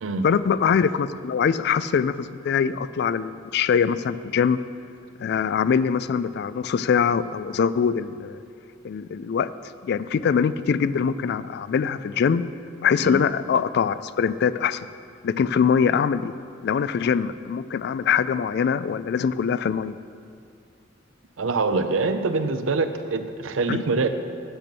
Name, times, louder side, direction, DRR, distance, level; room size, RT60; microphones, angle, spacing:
voice 1, 0.2-4.6 5.2-8.4 8.8-9.5 9.8-12.4 12.8-14.8 15.2-16.3 16.6-20.0 23.7-23.8, left 6 dB, 55° left, 15 dB, 0.3 m, -23 dB
voice 2, 21.4-24.1, right 3 dB, 90° right, 9 dB, 0.6 m, -24 dB
8.9 x 6.0 x 6.8 m, 2.3 s
head